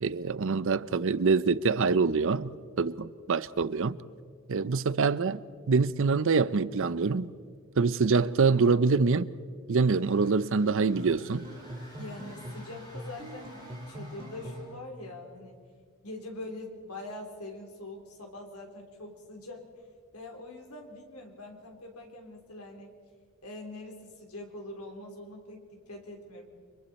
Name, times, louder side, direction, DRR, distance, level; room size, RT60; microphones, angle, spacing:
voice 1, 0.0-2.5 2.8-4.0 4.5-7.3 7.8-9.3 9.7-11.5, right 4 dB, 60° right, 0.6 m, -25 dB
sound 1, 9.9-14.8, equal, 20° left, 7.6 m, -52 dB
sound 2, 10.9-14.8, equal, 25° right, 2.5 m, -43 dB
voice 2, 12.0-15.7 16.0-19.6 20.1-22.9 23.4-26.4, left 2 dB, 90° left, 3.5 m, -43 dB
30.0 x 24.0 x 4.3 m
head